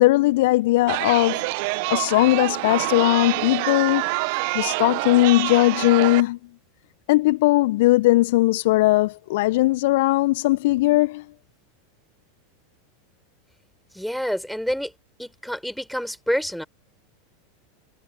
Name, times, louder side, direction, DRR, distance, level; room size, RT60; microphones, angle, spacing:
voice 1, 0.0-1.5 1.9-4.1 4.5-6.4 7.1-11.2, left 19 dB, 60° left, 1.2 m, -19 dB
Chatter, 0.9-6.2, right 30 dB, 55° right, 1.7 m, -26 dB
voice 2, 13.9-14.9 15.2-16.6, equal, ahead, 5.9 m, -27 dB
figure-of-eight pair, 85°, 0 cm